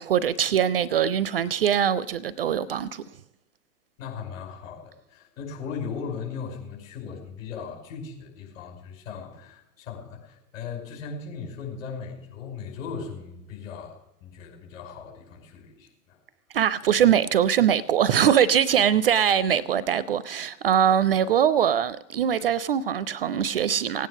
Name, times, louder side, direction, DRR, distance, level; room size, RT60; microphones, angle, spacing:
voice 1, 0.0-3.0 16.5-24.1, right 9 dB, 40° right, 0.4 m, -22 dB
voice 2, 4.0-16.2, left 6 dB, 50° left, 5.5 m, -38 dB
17.5 x 9.3 x 6.6 m
figure-of-eight pair, 110°, 48 cm